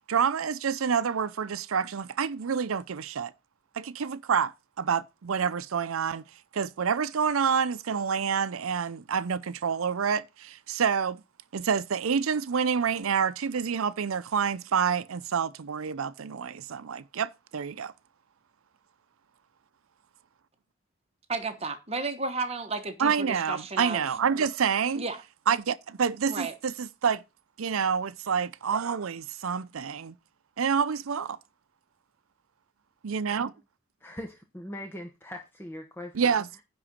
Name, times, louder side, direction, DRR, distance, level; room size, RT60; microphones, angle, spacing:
voice 1, 0.0-3.3 3.8-6.2 6.5-11.2 11.5-17.9 23.0-25.0 25.5-27.2 27.6-30.1 30.6-31.4 33.0-33.5 36.2-36.6, right 6 dB, 85° right, 0.5 m, -28 dB
voice 2, 21.3-24.0 25.0-25.2 26.3-26.5, right 3 dB, 30° right, 1.2 m, -33 dB
voice 3, 34.0-36.6, left 1 dB, 10° left, 1.0 m, -41 dB
10.0 x 3.9 x 7.3 m
head